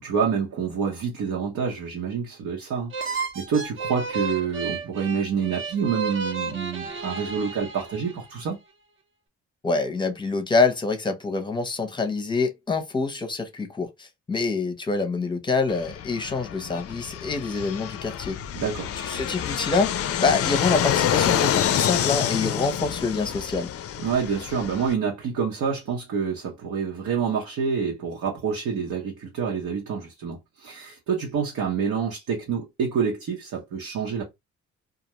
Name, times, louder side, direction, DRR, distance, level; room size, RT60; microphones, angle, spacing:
voice 1, 0.0-8.6 18.5-18.9 24.0-34.2, right 6 dB, 75° right, 0.9 m, -27 dB
sound 1, 2.9-8.4, right 4 dB, 40° right, 0.8 m, -32 dB
voice 2, 9.6-18.4 19.0-19.9 20.2-23.7, left 4 dB, 15° left, 0.7 m, -26 dB
Fixed-wing aircraft airplane, 15.7-24.9, left 10 dB, 50° left, 0.5 m, -27 dB
2.4 x 2.2 x 2.9 m
cardioid pair, 90°, 30 cm